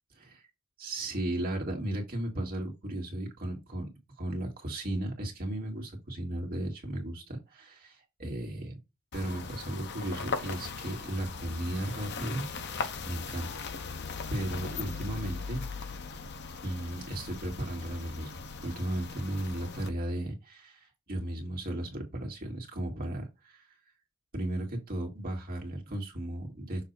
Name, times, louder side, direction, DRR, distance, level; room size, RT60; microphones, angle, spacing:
voice 1, 0.2-0.5 0.8-3.9 4.2-8.8 9.1-12.5 13.1-13.5 14.3-15.7 16.6-18.3 18.6-23.6 24.3-26.8, right 1 dB, 45° right, 2.0 m, -35 dB
sound 1, 9.1-19.9, left 4 dB, 55° left, 0.8 m, -39 dB
6.6 x 2.7 x 5.5 m
head